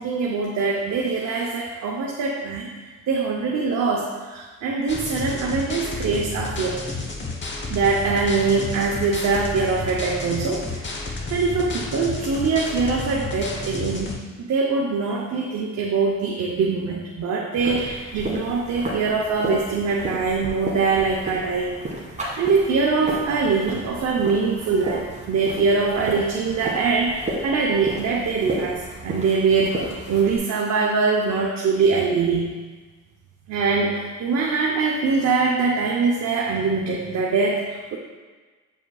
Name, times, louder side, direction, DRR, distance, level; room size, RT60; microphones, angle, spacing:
voice 1, 0.0-2.7 3.1-6.8 7.7-21.8 22.4-32.5 33.5-38.0, right 4 dB, 60° right, -1 dB, 0.8 m, -23 dB
sound 1, 4.9-14.2, left 3 dB, 40° left, 1.0 m, -31 dB
sound 2, 17.5-30.4, right 1 dB, 25° right, 1.9 m, -33 dB
7.9 x 5.2 x 2.3 m, 1.3 s
cardioid pair, 90°, 30 cm